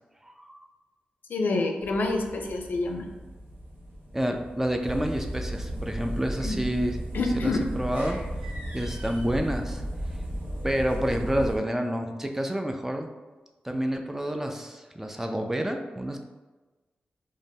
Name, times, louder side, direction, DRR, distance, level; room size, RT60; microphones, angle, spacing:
voice 1, 0.2-0.6 4.1-7.0 7.3-8.2 8.7-9.8 10.6-13.1 13.6-16.2, equal, 10° right, 4 dB, 0.3 m, -29 dB
voice 2, 1.3-3.1 6.4-6.6 7.1-7.7, left 2 dB, 75° left, 3 dB, 0.4 m, -27 dB
sound 1, 1.8-11.6, equal, 85° right, 0.8 m, -35 dB
2.6 x 2.1 x 3.4 m, 1.2 s
cardioid pair, 60°, 3 cm